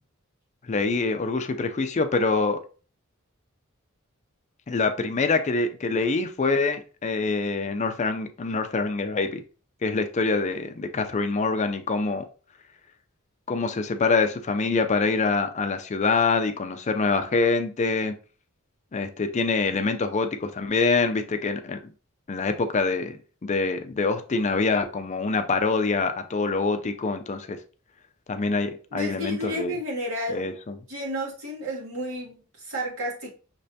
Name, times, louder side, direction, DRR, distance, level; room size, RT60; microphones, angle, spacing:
voice 1, 0.7-2.6 4.7-9.4 9.8-12.2 13.5-18.1 18.9-21.8 22.3-27.6 28.3-29.7 30.3-30.7, left 4 dB, 35° left, 0.4 m, -25 dB
voice 2, 28.9-33.3, equal, 75° right, 2.2 m, -32 dB
5.9 x 3.2 x 2.7 m
head